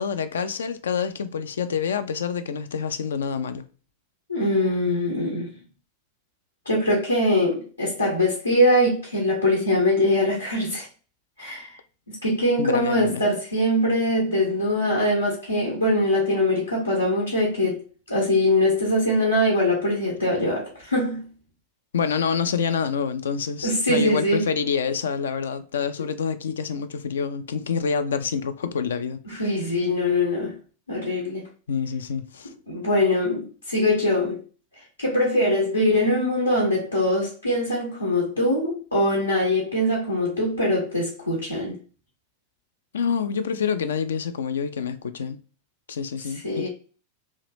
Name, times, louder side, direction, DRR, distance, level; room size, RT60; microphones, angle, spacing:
voice 1, 0.0-3.6 12.6-13.2 21.9-29.2 31.7-32.5 42.9-45.4 45.9-46.7, left 6 dB, 65° left, 0.3 m, -27 dB
voice 2, 4.3-5.6 6.6-10.9 11.4-11.8 12.1-17.8 18.1-21.3 23.6-24.4 29.2-30.6 30.9-31.5 32.4-34.4 34.8-41.8 46.3-46.7, left 1 dB, 85° left, 0.9 m, -22 dB
3.1 x 2.8 x 3.1 m
figure-of-eight pair, 90°, 0 cm